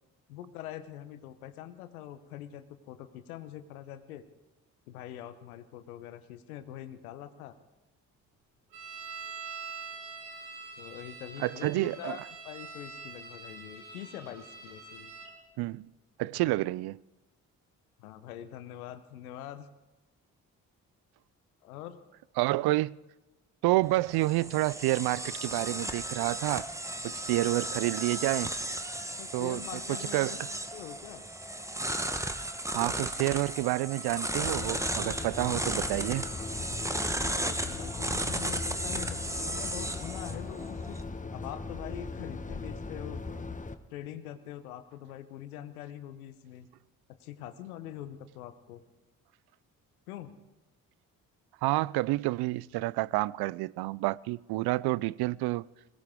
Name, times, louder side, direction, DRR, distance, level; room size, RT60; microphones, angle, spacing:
voice 1, 0.3-4.3 4.9-7.6 10.8-15.1 16.4-16.6 18.0-19.7 21.6-22.0 29.2-30.4 30.7-31.3 37.2-41.0 41.3-43.5 43.9-46.7 47.2-48.8 50.1-50.3, left 11 dB, 90° left, 0.9 m, -44 dB
sound 1, 8.7-15.3, right 4 dB, 85° right, 3.1 m, -44 dB
voice 2, 11.4-12.2 15.6-15.9 16.2-17.0 22.4-23.0 23.6-26.7 27.0-28.5 29.3-29.6 30.1-30.4 32.7-36.3 51.6-55.7, right 19 dB, 65° right, 0.5 m, -29 dB
sound 2, 23.8-41.0, right 1 dB, 5° right, 1.2 m, -35 dB
sound 3, 34.4-43.7, left 3 dB, 20° left, 1.1 m, -39 dB
21.0 x 18.0 x 3.6 m
hypercardioid pair, 45°, 42 cm